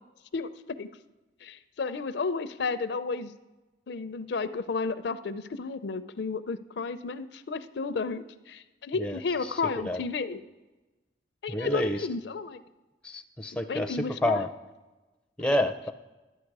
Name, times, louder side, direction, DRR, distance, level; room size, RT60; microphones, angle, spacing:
voice 1, 1.4-3.3 3.9-10.4 11.4-12.6 13.7-14.4, left 4 dB, 70° left, 12 dB, 0.5 m, -32 dB
voice 2, 8.9-10.0 11.5-12.1 13.0-14.5 15.4-15.9, left 1 dB, 5° left, 7 dB, 0.4 m, -29 dB
11.5 x 8.4 x 4.7 m, 1.1 s
head